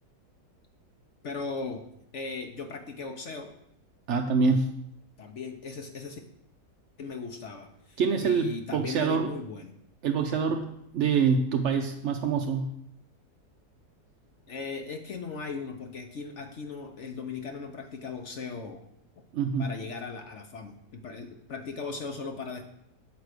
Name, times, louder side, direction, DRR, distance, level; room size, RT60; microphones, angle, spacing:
voice 1, 1.2-1.9 2.1-3.5 5.2-6.2 7.0-9.7 14.5-18.8 19.6-22.6, left 4 dB, 55° left, 5 dB, 0.9 m, -38 dB
voice 2, 4.1-4.7 8.0-9.3 10.0-12.7 19.3-19.7, right 5 dB, 65° right, 4 dB, 0.7 m, -26 dB
8.2 x 4.7 x 6.5 m, 0.77 s
omnidirectional pair, 1.8 m